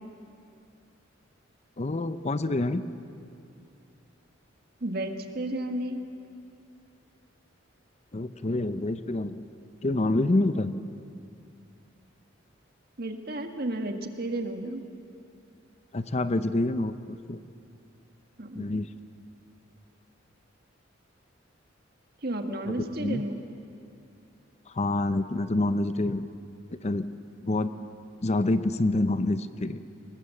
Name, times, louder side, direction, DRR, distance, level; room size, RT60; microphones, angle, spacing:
voice 1, 1.8-2.8 8.1-9.4 9.8-10.7 15.9-17.4 18.5-18.9 22.6-23.2 24.7-26.3 26.7-27.1 27.4-27.7 28.2-29.9, left 2 dB, 35° left, 12 dB, 0.6 m, -27 dB
voice 2, 4.8-6.0 13.0-14.8 18.4-18.7 22.2-23.4, right 1 dB, 50° right, 5 dB, 1.6 m, -32 dB
23.5 x 20.0 x 7.6 m, 2.5 s
head